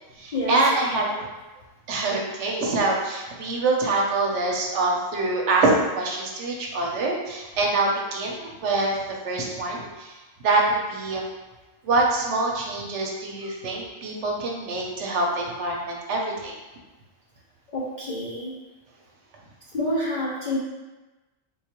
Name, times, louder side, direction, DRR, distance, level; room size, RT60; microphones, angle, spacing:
voice 1, 0.2-1.1 1.9-9.0 9.2-10.2 10.4-11.2 11.8-16.5, right 2 dB, 70° right, -1 dB, 0.8 m, -25 dB
voice 2, 17.7-18.6 19.7-20.6, left 1 dB, 65° left, -6 dB, 0.4 m, -28 dB
3.9 x 2.3 x 2.9 m, 1.1 s
omnidirectional pair, 1.4 m